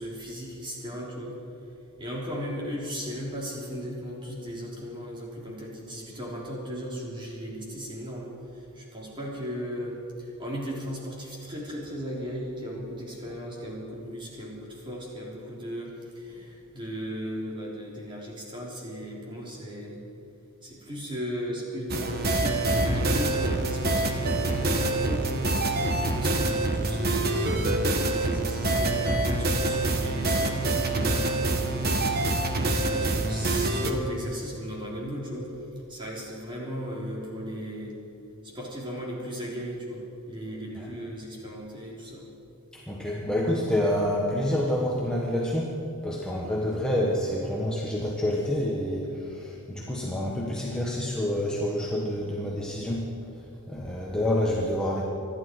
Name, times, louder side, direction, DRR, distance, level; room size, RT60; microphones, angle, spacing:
voice 1, 0.0-1.4 2.0-8.3 8.8-20.0 20.6-22.7 23.0-25.5 25.9-27.7 28.1-32.2 32.6-35.5 35.9-37.9 38.4-42.2, equal, 20° right, -4 dB, 3.7 m, -36 dB
sound 1, 21.9-33.9, right 2 dB, 45° right, 1.3 m, -26 dB
voice 2, 42.7-45.7 46.0-49.1 49.4-53.1 53.7-55.0, left 1 dB, 5° left, -4 dB, 1.4 m, -28 dB
26.0 x 11.5 x 4.7 m, 2.7 s
head